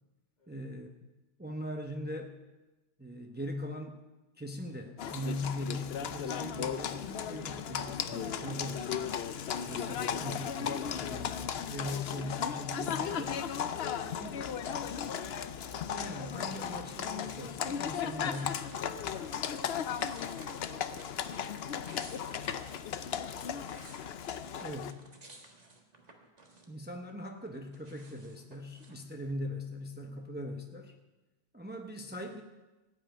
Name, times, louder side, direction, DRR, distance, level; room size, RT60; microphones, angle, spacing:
voice 1, 0.5-1.1 1.4-2.4 3.0-4.0 4.4-9.2 9.7-13.4 14.0-14.3 15.9-18.6 24.6-25.0 26.7-30.9 31.5-32.4, left 1 dB, 10° right, 3 dB, 0.8 m, -40 dB
Livestock farm animals working animals, 5.0-24.9, left 8 dB, 80° left, 0.9 m, -36 dB
sound 1, 18.2-19.3 19.9-21.3 21.7-22.8 23.4-27.0 27.3-29.0, right 2 dB, 40° right, 1.6 m, -56 dB
voice 2, 18.6-23.8 25.1-25.4, left 1 dB, 45° left, 1 dB, 2.0 m, -58 dB
15.5 x 5.8 x 9.1 m, 1.1 s
omnidirectional pair, 1.0 m